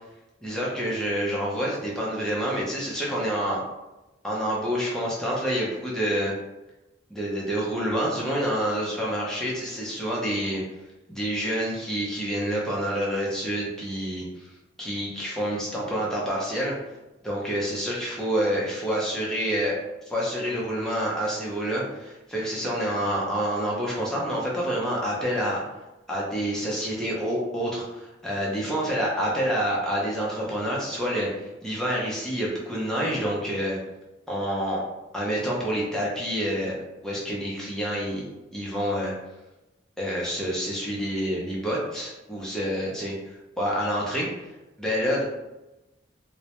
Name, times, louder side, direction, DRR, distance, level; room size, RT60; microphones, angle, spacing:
voice 1, 0.4-3.6 4.2-6.3 7.1-10.6 11.1-14.5 14.8-16.8 17.2-19.8 20.1-25.6 26.1-33.8 34.3-34.8 35.1-38.3 38.5-39.1 40.0-44.3 44.8-45.2, equal, 5° left, -5 dB, 0.5 m, -28 dB
2.2 x 2.0 x 2.8 m, 1.0 s
head